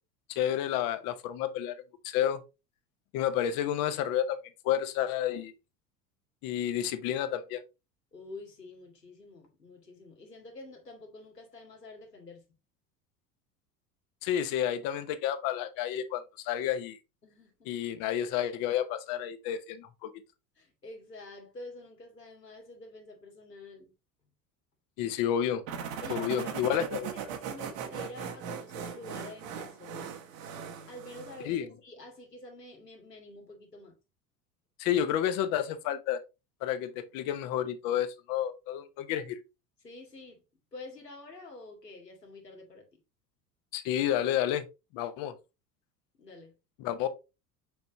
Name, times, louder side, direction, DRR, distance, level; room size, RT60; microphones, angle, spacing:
voice 1, 0.3-1.7 2.0-2.4 3.1-4.4 4.6-5.5 6.4-7.6 14.2-17.0 17.7-20.1 25.0-25.6 26.1-27.1 31.4-31.7 34.8-36.2 36.6-39.4 43.7-44.6 44.9-45.3 46.8-47.1, left 10 dB, 45° left, 1.1 m, -30 dB
voice 2, 8.1-12.4 17.2-17.7 20.6-23.9 26.0-26.8 27.5-30.1 30.9-34.0 39.8-40.4 40.7-42.8 46.2-46.5, left 2 dB, 85° left, 2.2 m, -48 dB
sound 1, 25.7-31.5, right 7 dB, 55° right, 1.5 m, -39 dB
6.9 x 5.2 x 2.9 m
figure-of-eight pair, 75°, 47 cm